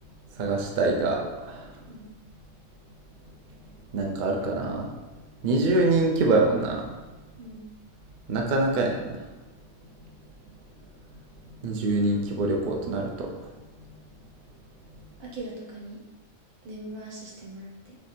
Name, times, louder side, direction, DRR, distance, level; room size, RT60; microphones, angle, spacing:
voice 1, 0.4-1.2 1.5-1.7 3.9-4.9 5.4-6.9 8.3-9.2 11.6-13.3, right 2 dB, 50° right, 0 dB, 0.6 m, -24 dB
voice 2, 15.2-16.0 16.6-18.0, right 1 dB, 80° right, -3 dB, 1.4 m, -40 dB
3.3 x 3.1 x 4.1 m, 1.1 s
omnidirectional pair, 1.4 m